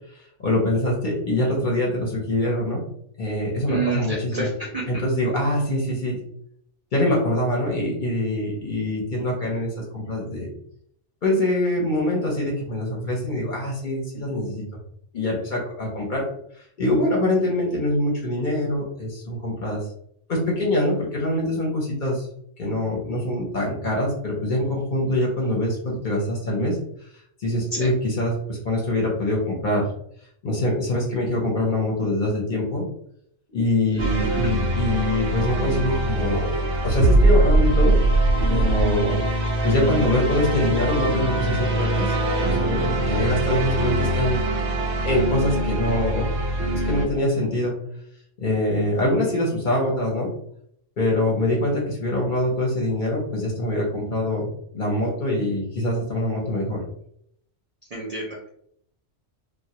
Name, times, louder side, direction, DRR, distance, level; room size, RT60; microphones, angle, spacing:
voice 1, 0.1-2.8 3.2-4.5 4.9-6.2 6.9-10.5 11.2-14.6 15.1-19.8 20.3-22.3 22.6-26.8 27.4-29.9 30.4-32.9 33.5-37.9 38.5-39.2 39.6-44.4 45.0-46.3 46.7-47.8 48.4-50.3 51.0-54.5 54.7-56.8, left 1 dB, 50° left, -2 dB, 0.7 m, -24 dB
voice 2, 3.7-4.9 27.7-27.9 33.9-34.1 34.4-34.5 57.9-58.5, right 3 dB, 60° right, -3 dB, 0.4 m, -29 dB
sound 1, 34.0-47.1, right 1 dB, 85° right, 0.9 m, -22 dB
2.2 x 2.1 x 2.7 m, 0.69 s
omnidirectional pair, 1.2 m